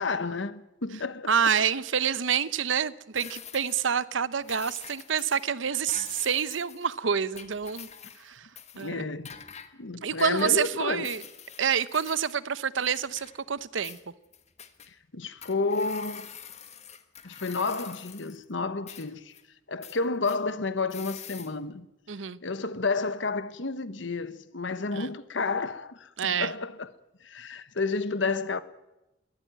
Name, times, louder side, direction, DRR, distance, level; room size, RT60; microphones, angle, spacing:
voice 1, 0.0-1.3 8.7-9.3 9.8-11.1 14.9-16.3 17.2-19.3 19.7-21.9 22.4-26.9 27.2-28.6, left 3 dB, 70° left, 1.2 m, -31 dB
voice 2, 1.3-7.9 8.2-8.5 8.7-9.0 10.0-11.2 11.6-14.0 22.1-22.4 24.9-25.1 26.2-26.5, right 7 dB, 75° right, 0.8 m, -27 dB
sound 1, 3.2-3.9 4.4-5.5 5.9-6.9 7.3-8.3 8.6-8.9 9.2-9.7 10.2-10.7 11.0-12.3 12.8-13.6 13.8-14.9 15.4-18.4 18.9-19.4 19.8-20.4 20.9-21.5, left 8 dB, 35° left, 1.4 m, -46 dB
21.5 x 14.5 x 9.2 m
head